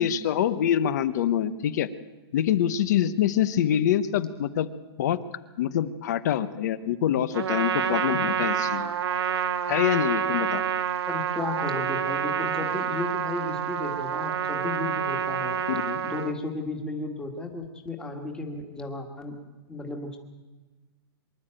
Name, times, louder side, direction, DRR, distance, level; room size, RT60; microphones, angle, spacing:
voice 1, 0.0-1.9 2.3-4.7 5.0-5.2 5.6-8.9 9.7-10.6 15.7-16.0, left 10 dB, 40° left, 14 dB, 0.9 m, -25 dB
Trumpet, 7.3-16.3, right 8 dB, 80° right, 1.6 m, -28 dB
voice 2, 11.1-15.6 16.0-19.4 19.7-20.2, left 3 dB, 5° left, 3 dB, 1.7 m, -34 dB
25.0 x 12.0 x 8.9 m, 1.3 s
hypercardioid pair, 165°, 14 cm